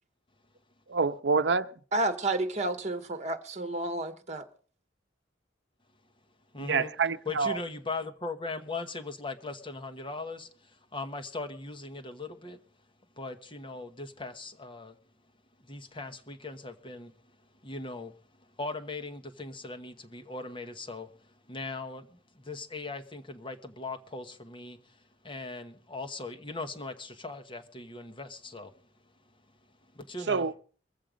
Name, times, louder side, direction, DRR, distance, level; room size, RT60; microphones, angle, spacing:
voice 1, 0.9-1.7 6.6-7.6 30.3-30.6, right 4 dB, 75° right, 0.7 m, -27 dB
voice 2, 1.9-4.5, right 2 dB, 40° right, 1.2 m, -31 dB
voice 3, 6.5-6.9 7.3-12.6 13.2-15.0 15.6-17.1 17.6-18.1 18.4-28.7 29.9-30.5, left 3 dB, 30° left, 1.2 m, -39 dB
22.5 x 7.6 x 5.1 m
head